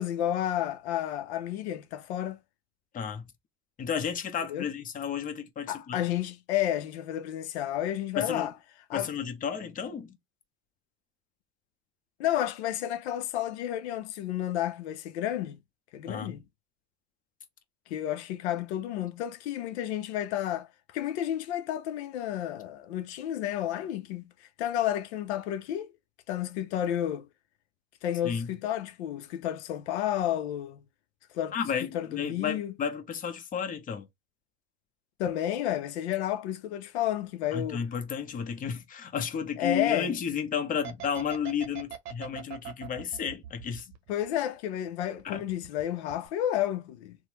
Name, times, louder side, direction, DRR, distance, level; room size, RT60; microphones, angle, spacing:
voice 1, 0.0-2.4 4.5-4.7 5.7-8.5 8.9-9.1 12.2-15.6 15.9-16.5 17.9-25.9 26.3-27.3 28.0-30.8 31.3-31.6 31.9-32.7 35.2-37.8 39.6-40.1 44.1-47.2, left 11 dB, 80° left, 0.5 m, -31 dB
voice 2, 2.9-3.3 3.8-6.0 8.2-8.5 8.9-10.2 16.1-16.4 28.2-28.5 31.5-34.1 37.5-43.9 45.2-45.4, left 7 dB, 25° left, 0.7 m, -32 dB
sound 1, 40.8-44.6 44.9-45.8 46.1-46.3, right 9 dB, 50° right, 0.8 m, -41 dB
3.1 x 2.1 x 2.8 m
supercardioid pair, 105°, 33 cm